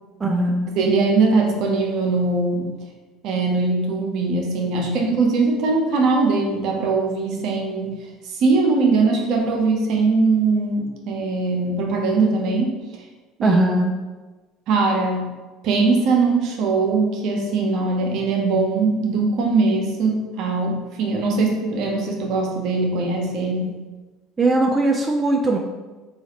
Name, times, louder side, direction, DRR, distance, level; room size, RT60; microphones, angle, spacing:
voice 1, 0.2-0.7 13.4-13.9 24.4-25.6, right 2 dB, 25° right, 0 dB, 0.4 m, -19 dB
voice 2, 0.8-2.7 3.2-7.9 8.3-12.8 13.4-13.6 14.7-15.3 15.6-23.7, right 3 dB, 60° right, 1 dB, 0.8 m, -21 dB
3.9 x 2.5 x 3.0 m, 1.2 s
hypercardioid pair, 80°, 0 cm